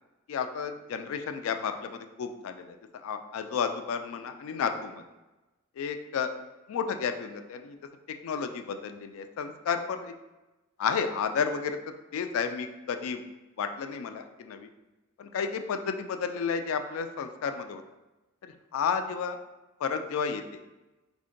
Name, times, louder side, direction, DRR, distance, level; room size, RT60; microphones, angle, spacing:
voice 1, 0.3-2.7 3.0-5.0 5.8-6.3 6.7-7.7 8.2-10.1 10.8-11.8 12.1-13.2 13.6-14.7 15.2-17.8 18.7-19.4 19.8-20.6, left 6 dB, 70° left, 7 dB, 0.3 m, -32 dB
3.6 x 2.1 x 3.7 m, 1.1 s
head